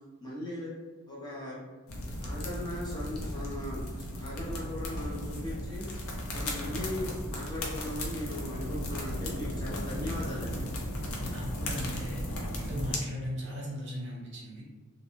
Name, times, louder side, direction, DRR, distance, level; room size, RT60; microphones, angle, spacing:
voice 1, 0.2-0.7 1.1-1.6 2.2-3.8 4.1-5.9 6.3-10.6, left 1 dB, 20° left, -7 dB, 0.5 m, -38 dB
sound 1, 1.9-13.0, left 1 dB, 70° left, 0.5 m, -35 dB
voice 2, 11.3-14.6, equal, 55° right, -4 dB, 0.8 m, -38 dB
2.5 x 2.1 x 2.9 m, 1.3 s
head